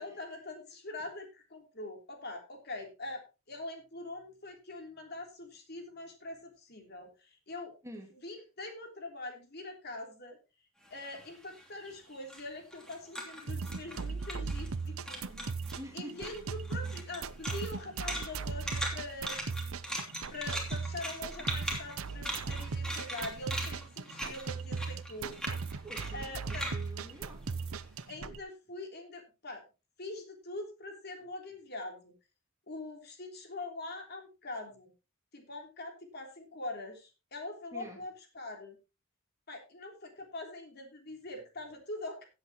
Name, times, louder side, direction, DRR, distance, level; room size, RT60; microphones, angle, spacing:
voice 1, 0.0-7.7 8.2-10.4 10.9-19.8 20.3-25.4 26.1-26.6 28.1-29.6 30.0-32.1 32.7-34.9 35.3-38.8 39.5-42.2, left 2 dB, 50° left, 3.3 m, -43 dB
voice 2, 7.8-8.2 15.8-16.5 25.8-27.5 37.7-38.0, equal, 15° right, 2.0 m, -47 dB
sound 1, 10.9-14.8 15.1-15.8 16.2-28.0, equal, 5° left, 2.8 m, -41 dB
sound 2, 13.5-28.4, right 4 dB, 90° right, 0.8 m, -38 dB
16.5 x 8.3 x 3.0 m
head